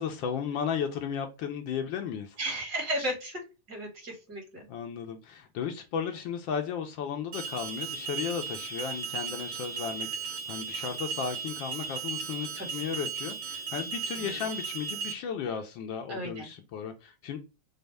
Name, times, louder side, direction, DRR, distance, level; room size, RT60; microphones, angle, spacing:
voice 1, 0.0-2.4 4.7-17.4, left 7 dB, 75° left, 1.3 m, -35 dB
voice 2, 2.4-3.4 3.7-4.7 12.5-12.8 14.2-14.5 16.1-16.5, right 1 dB, 50° right, 2.5 m, -35 dB
Alarm, 7.3-15.1, right 6 dB, 80° right, 1.8 m, -36 dB
5.1 x 2.1 x 3.2 m
omnidirectional pair, 2.2 m